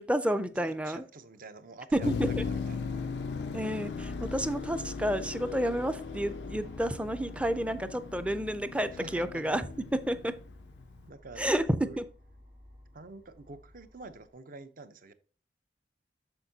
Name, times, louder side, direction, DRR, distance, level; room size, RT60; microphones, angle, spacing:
voice 1, 0.0-1.0 1.9-2.4 3.5-9.6 9.9-10.3 11.4-12.1, right 1 dB, 5° right, 12 dB, 0.4 m, -30 dB
voice 2, 0.5-2.9 8.9-9.4 11.1-11.5 11.8-12.0 12.9-15.1, right 3 dB, 50° right, 12 dB, 0.6 m, -47 dB
sound 1, 1.9-14.3, left 1 dB, 75° right, 3.6 m, -46 dB
Motor vehicle (road), 2.0-11.0, left 6 dB, 70° left, 0.3 m, -38 dB
8.1 x 6.4 x 2.7 m, 0.39 s
head